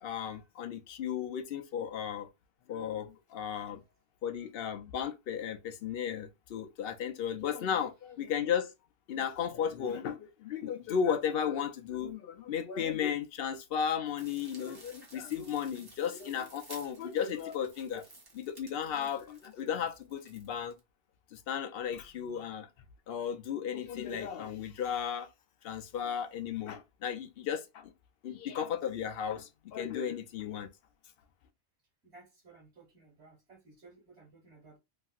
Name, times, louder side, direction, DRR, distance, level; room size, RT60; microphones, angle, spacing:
voice 1, 0.0-2.3 2.7-3.8 4.2-8.7 9.1-18.0 18.3-20.7 21.3-22.7 23.1-25.3 25.6-27.9 28.2-30.7, left 8 dB, 65° left, 0.7 m, -35 dB
sound 1, 14.2-20.8, right 2 dB, 25° right, 0.7 m, -55 dB
voice 2, 32.1-34.8, right 3 dB, 80° right, 1.7 m, -57 dB
3.1 x 2.7 x 2.4 m
omnidirectional pair, 1.1 m